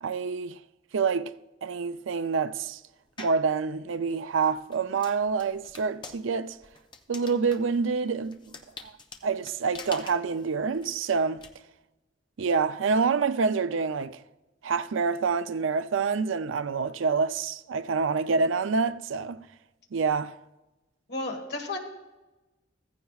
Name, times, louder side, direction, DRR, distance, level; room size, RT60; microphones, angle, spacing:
voice 1, 0.0-0.6 0.9-1.3 1.6-2.8 3.2-6.6 7.1-8.5 8.8-8.9 9.2-11.4 12.4-14.2 14.6-19.5 19.9-20.4, right 5 dB, 85° right, 0.5 m, -27 dB
sound 1, 3.2-3.5 4.1-11.5, left 4 dB, 25° left, 0.8 m, -46 dB
voice 2, 21.1-21.8, left 2 dB, 55° left, 1.6 m, -32 dB
15.0 x 15.0 x 2.4 m
head